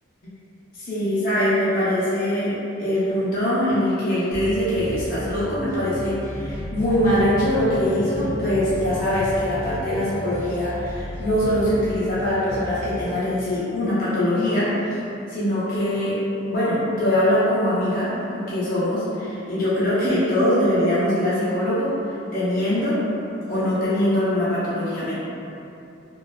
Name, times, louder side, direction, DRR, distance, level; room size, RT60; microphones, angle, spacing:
voice 1, 0.7-15.0 15.3-16.2 16.5-23.0 23.5-25.1, left 1 dB, 45° left, -10 dB, 0.6 m, -22 dB
sound 1, 4.3-13.0, equal, 15° right, 0.3 m, -35 dB
sound 2, 6.3-16.7, equal, 60° right, 0.6 m, -39 dB
2.6 x 2.2 x 2.3 m, 2.7 s
head